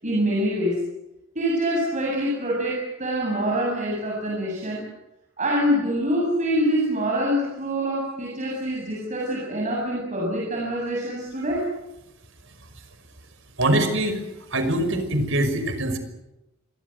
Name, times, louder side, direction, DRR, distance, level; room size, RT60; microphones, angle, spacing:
voice 1, 0.0-0.8 1.3-4.9 5.4-11.7, equal, 35° right, -2 dB, 7.5 m, -25 dB
voice 2, 13.6-14.2 14.5-16.0, right 1 dB, 65° right, 9 dB, 5.5 m, -23 dB
27.0 x 23.0 x 8.0 m, 0.94 s
head